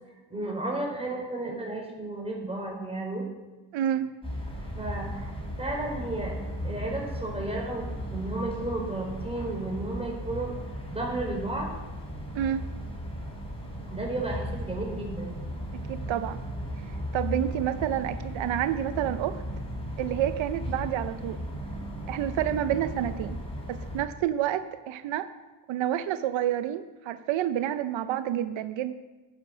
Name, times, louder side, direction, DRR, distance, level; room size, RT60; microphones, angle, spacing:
voice 1, 0.3-3.2 4.7-5.3 5.6-6.4 6.6-10.5 10.9-11.7 13.9-15.3, right 2 dB, 15° right, -1 dB, 4.7 m, -33 dB
voice 2, 3.7-4.1 12.3-12.7 15.9-16.4 17.1-19.4 20.0-21.4 22.1-23.4 23.7-25.3 25.7-28.9, right 11 dB, 80° right, 11 dB, 0.7 m, -29 dB
sound 1, 4.2-24.0, equal, 10° left, 5.0 m, -36 dB
11.5 x 9.8 x 6.2 m, 1.2 s
cardioid pair, 90°, 45 cm